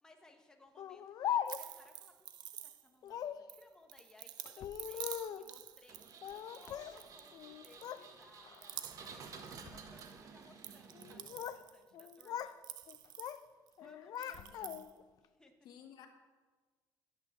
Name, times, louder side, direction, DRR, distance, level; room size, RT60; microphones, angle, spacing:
voice 1, 0.0-2.1 2.6-6.0 6.5-12.5 13.8-14.8 15.2-15.7, left 2 dB, 10° left, 3 dB, 1.3 m, -63 dB
Speech, 0.8-1.9 3.0-3.5 4.5-5.5 6.2-7.0 7.3-8.1 8.4-8.8 9.5-9.8 10.9-11.7 11.9-12.6 12.9-13.4 13.8-15.0, left 10 dB, 60° left, 0.6 m, -41 dB
sound 1, 1.4-3.1 3.5-7.3 7.6-8.2 8.5-10.1 10.4-13.7 14.1-14.9, right 12 dB, 70° right, 0.8 m, -49 dB
Engine, 5.9-11.6, right 5 dB, 50° right, 1.4 m, -53 dB
voice 2, 14.4-14.8 15.6-16.1, left 9 dB, 80° left, 4 dB, 1.9 m, -57 dB
12.0 x 9.0 x 7.3 m, 1.3 s
cardioid pair, 145°, 7 cm